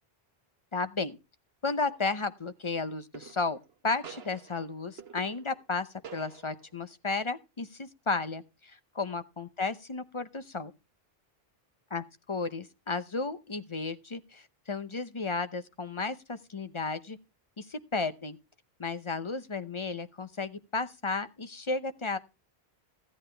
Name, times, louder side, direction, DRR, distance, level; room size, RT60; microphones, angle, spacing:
voice 1, 0.7-1.2 1.6-3.6 3.8-10.7 11.9-12.0 12.3-17.2 17.6-18.4 18.8-22.2, left 3 dB, 30° left, 12 dB, 0.7 m, -33 dB
sound 1, 1.9-2.3 3.1-3.7 4.0-5.7 6.0-6.8, right 7 dB, 75° right, 1.3 m, -49 dB
15.5 x 8.9 x 3.3 m, 0.28 s
omnidirectional pair, 1.0 m